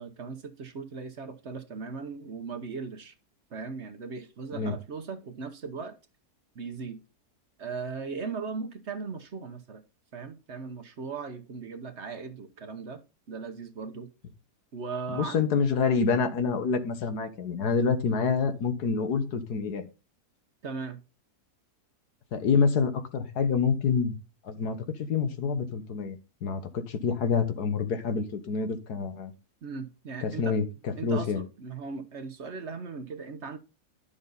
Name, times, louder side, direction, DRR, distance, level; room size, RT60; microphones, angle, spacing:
voice 1, 0.0-3.1 3.5-5.9 6.5-7.0 7.6-9.8 10.1-13.0 13.3-14.1 14.7-15.5 20.6-21.0 29.6-30.5 31.0-33.6, right 5 dB, 50° right, 1.1 m, -38 dB
voice 2, 15.1-19.9 22.3-24.2 24.4-29.3 30.2-31.4, left 5 dB, 80° left, 1.8 m, -27 dB
11.0 x 7.1 x 4.0 m
omnidirectional pair, 1.7 m